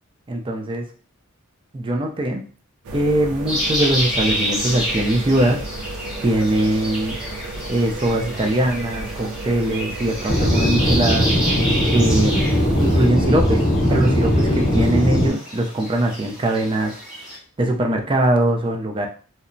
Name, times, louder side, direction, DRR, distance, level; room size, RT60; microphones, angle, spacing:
voice 1, 0.3-0.8 1.7-2.4 2.9-5.6 6.2-7.2 7.7-11.3 11.9-12.5 12.8-17.0 17.6-19.1, right 1 dB, 25° right, 2 dB, 0.4 m, -21 dB
sound 1, 2.8-13.1, right 2 dB, 85° right, 0.4 m, -33 dB
sound 2, 3.5-17.4, equal, 5° right, 0.8 m, -29 dB
Aircraft / Engine, 10.3-15.3, equal, 35° left, 0.6 m, -19 dB
2.8 x 2.1 x 2.5 m, 0.40 s
head